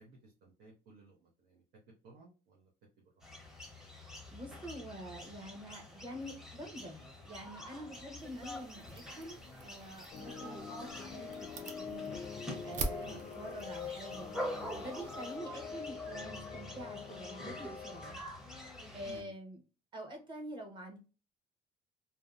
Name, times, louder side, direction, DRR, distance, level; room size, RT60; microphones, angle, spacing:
voice 1, 0.0-1.6 2.0-2.7 13.0-13.3 19.0-19.3, right 2 dB, 85° right, -3 dB, 0.8 m, -57 dB
sound 1, 3.2-19.2, equal, 5° right, 0.7 m, -46 dB
voice 2, 4.0-12.1 12.6-14.3 14.7-18.2 18.9-19.6 19.9-21.0, equal, 30° right, 2 dB, 0.9 m, -47 dB
sound 2, 8.2-15.4, right 3 dB, 45° right, 0.5 m, -46 dB
sound 3, 10.1-18.1, left 6 dB, 35° left, 0.4 m, -45 dB
2.7 x 2.2 x 2.4 m, 0.32 s
cardioid pair, 110°, 17 cm